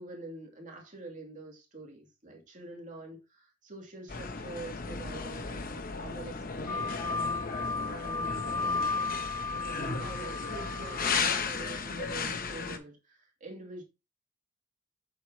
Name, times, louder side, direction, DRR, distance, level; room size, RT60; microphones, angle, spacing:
voice 1, 0.0-7.3 7.5-8.9 9.7-13.8, right 2 dB, 40° right, 2.4 m, -45 dB
sound 1, 4.1-12.8, left 5 dB, 45° left, 0.9 m, -35 dB
sound 2, 6.7-11.5, left 3 dB, 20° left, 1.0 m, -34 dB
8.2 x 6.6 x 2.8 m
head